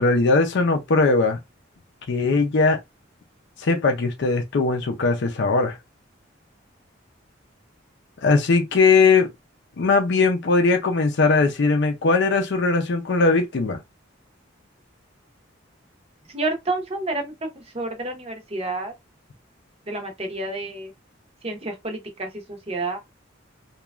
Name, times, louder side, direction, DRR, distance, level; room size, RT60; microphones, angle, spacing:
voice 1, 0.0-1.4 2.1-2.8 3.6-5.8 8.2-9.3 9.8-13.8, left 3 dB, 60° left, 0.5 m, -19 dB
voice 2, 16.3-17.5 17.7-18.9 19.9-20.9 21.4-23.0, right 2 dB, 30° right, 0.7 m, -29 dB
3.0 x 2.2 x 2.3 m
head